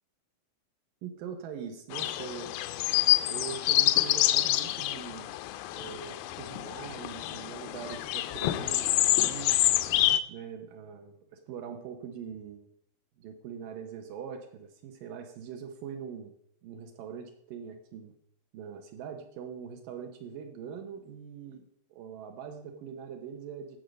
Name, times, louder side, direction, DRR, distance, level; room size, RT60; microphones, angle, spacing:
voice 1, 1.0-2.5 3.2-5.3 5.7-9.6 10.3-11.1 11.5-12.7 13.2-16.3 16.6-18.1 18.5-21.6 21.9-23.8, right 7 dB, 70° right, 5 dB, 2.3 m, -42 dB
sound 1, 1.9-10.2, left 16 dB, 80° left, 2.3 m, -27 dB
15.5 x 6.6 x 5.2 m, 0.68 s
omnidirectional pair, 4.7 m